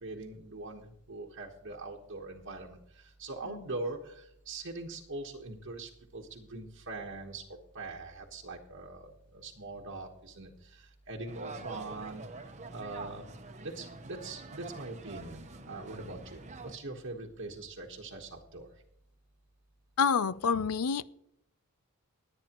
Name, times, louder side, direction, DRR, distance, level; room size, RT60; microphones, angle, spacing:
voice 1, 0.0-13.2 13.6-18.8, right 2 dB, 55° right, -2 dB, 1.2 m, -42 dB
sound 1, 11.3-16.8, right 3 dB, 30° right, 0.9 m, -46 dB
voice 2, 20.0-21.1, left 6 dB, 85° left, 17 dB, 0.5 m, -28 dB
21.0 x 9.0 x 3.0 m, 0.73 s
head